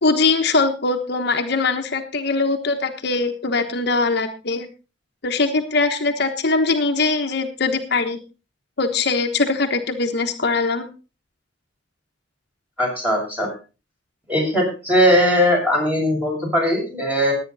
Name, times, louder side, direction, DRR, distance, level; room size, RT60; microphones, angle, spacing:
voice 1, 0.0-4.7 5.2-8.2 8.8-10.9, left 3 dB, 60° left, 5 dB, 1.3 m, -21 dB
voice 2, 12.8-13.5 14.3-17.3, equal, 10° right, -1 dB, 6.6 m, -19 dB
18.5 x 9.0 x 4.1 m, 0.33 s
head